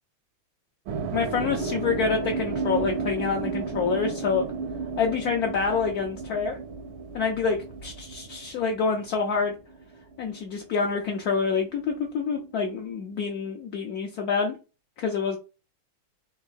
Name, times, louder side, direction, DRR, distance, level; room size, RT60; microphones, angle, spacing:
sound 1, 0.9-11.0 11.2-12.9, right 4 dB, 80° right, 1.5 m, -33 dB
voice 1, 1.1-4.4 5.0-6.6 7.1-9.5 10.2-14.6 15.0-15.4, left 5 dB, 75° left, 2 dB, 0.8 m, -27 dB
4.0 x 2.6 x 3.8 m, 0.31 s
omnidirectional pair, 2.3 m